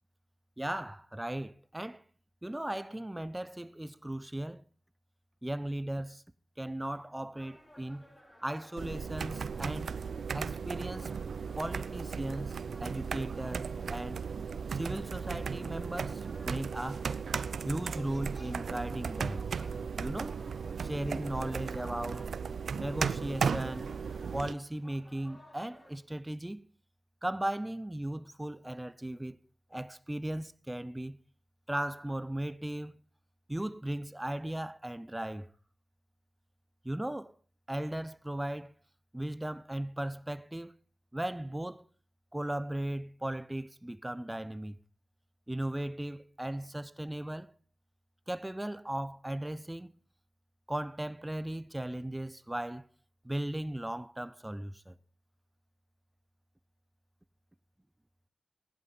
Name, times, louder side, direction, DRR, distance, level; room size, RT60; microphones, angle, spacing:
voice 1, 0.6-2.0 2.4-4.6 5.4-6.2 6.6-8.1 8.4-9.9 10.3-11.1 11.5-14.2 14.7-17.1 17.6-19.5 20.0-20.4 20.8-22.3 22.7-23.9 24.3-26.6 27.2-29.4 29.7-31.2 31.7-33.0 33.5-35.5 36.8-37.3 37.7-38.7 39.1-40.7 41.1-41.9 42.3-44.8 45.5-47.5 48.3-49.9 50.7-52.9 53.2-55.0, right 1 dB, 15° right, 0.8 m, -37 dB
sound 1, 7.3-26.0, equal, 10° left, 7.3 m, -57 dB
sound 2, 8.8-24.5, right 6 dB, 80° right, 0.6 m, -36 dB
16.0 x 11.0 x 5.4 m
cardioid pair, 50°, 0 cm